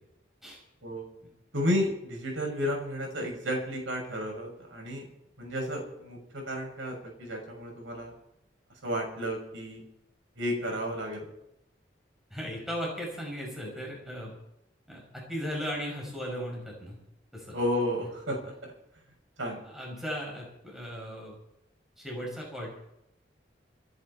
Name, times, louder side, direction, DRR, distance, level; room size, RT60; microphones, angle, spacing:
voice 1, 1.5-5.0 5.4-8.1 8.8-9.8 10.4-11.3 17.5-18.7 19.4-19.6, equal, 90° right, 1 dB, 6.6 m, -32 dB
voice 2, 12.3-14.3 14.9-17.0 17.3-17.6 19.6-21.3 22.0-22.7, equal, ahead, -3 dB, 6.2 m, -37 dB
29.0 x 10.5 x 4.3 m, 0.81 s
head